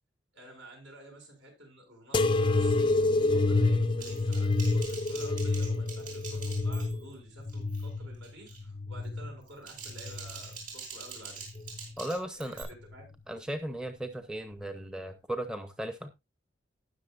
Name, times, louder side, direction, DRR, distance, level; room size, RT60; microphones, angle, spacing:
voice 1, 0.3-11.4 12.3-13.0, right 1 dB, 70° right, 1 dB, 6.5 m, -51 dB
sound 1, 2.1-9.3 9.9-10.6 11.4-11.9 12.9-13.0, left 2 dB, 25° left, 0.4 m, -28 dB
Typing, 4.0-7.2 7.5-7.9 8.2-8.6 9.4-12.6, right 5 dB, 40° right, 5.1 m, -45 dB
voice 2, 12.0-12.7 13.3-16.1, right 1 dB, 5° right, 8 dB, 0.7 m, -36 dB
18.5 x 6.4 x 2.5 m, 0.22 s
head